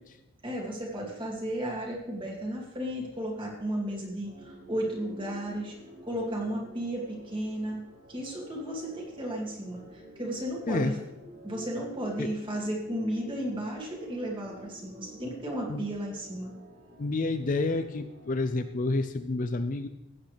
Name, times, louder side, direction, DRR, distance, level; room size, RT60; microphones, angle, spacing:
voice 1, 0.4-5.7 6.1-11.0 11.4-16.5, right 1 dB, 25° right, -2 dB, 2.3 m, -34 dB
sound 1, 4.2-18.7, equal, 70° right, 4.5 m, -49 dB
voice 2, 17.0-19.9, left 2 dB, 40° left, 9 dB, 0.4 m, -29 dB
15.5 x 8.7 x 3.3 m, 0.89 s
head